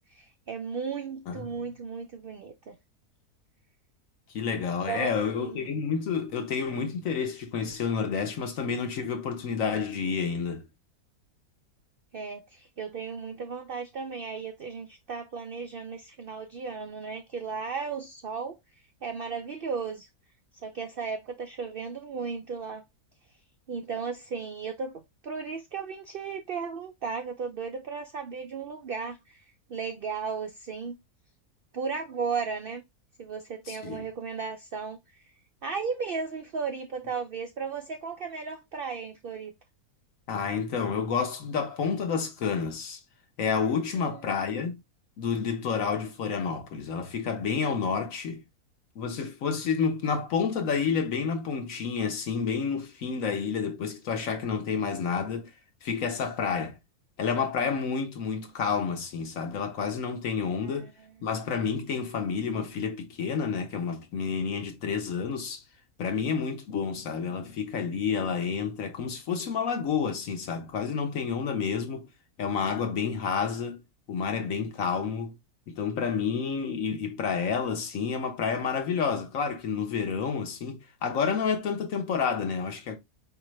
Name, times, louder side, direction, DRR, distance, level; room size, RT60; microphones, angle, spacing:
voice 1, 0.1-2.8 4.9-5.7 12.1-18.5 19.0-20.1 20.6-22.8 23.7-29.4 29.7-31.0 31.7-32.8 33.2-35.2 35.6-39.5 43.9-44.2 60.6-61.1, right 5 dB, 70° right, 0.5 m, -35 dB
voice 2, 4.3-10.6 33.7-34.1 40.3-43.0 43.4-44.8 45.2-48.4 48.9-55.5 55.8-56.8 57.2-60.9 61.2-65.6 66.0-72.1 72.4-73.8 74.1-75.3 75.7-83.0, left 6 dB, 60° left, 1.4 m, -29 dB
4.9 x 3.2 x 3.1 m
omnidirectional pair, 1.6 m